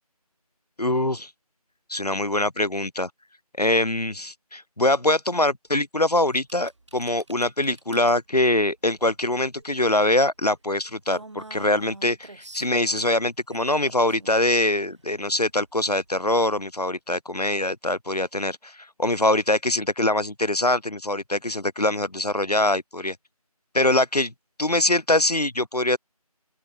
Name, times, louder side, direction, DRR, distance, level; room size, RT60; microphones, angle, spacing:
voice 1, 0.8-1.3 1.9-3.1 3.6-12.1 12.5-23.2 23.7-24.3 24.6-26.0, left 1 dB, 90° left, 3.1 m, -23 dB
sound 1, 6.2-16.9, right 2 dB, 50° right, 5.7 m, -49 dB
open air
figure-of-eight pair, 170°, 20 cm